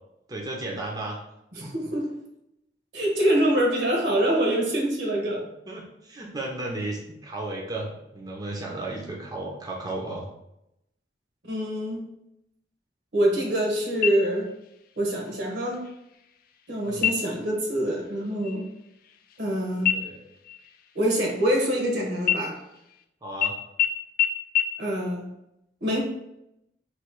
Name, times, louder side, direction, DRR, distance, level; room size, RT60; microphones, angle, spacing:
voice 1, 0.3-1.2 5.7-10.2 16.8-17.1 19.9-20.2 23.2-23.5, right 2 dB, 25° right, -1 dB, 0.6 m, -34 dB
voice 2, 1.5-2.1 2.9-5.4 11.4-12.1 13.1-14.5 15.0-15.9 16.7-18.7 19.4-20.0 20.9-22.6 24.8-25.3 25.8-26.0, right 1 dB, 75° right, -1 dB, 1.2 m, -25 dB
sound 1, 14.0-14.7 15.1-15.2 15.7-16.3 16.9-17.5 17.9-18.1 18.4-19.5 19.9-21.9 22.2-23.0 23.4-23.5 23.8-23.9 24.2-24.3 24.6-24.7, left 9 dB, 55° left, 0.4 m, -27 dB
3.1 x 2.8 x 4.5 m, 0.83 s
head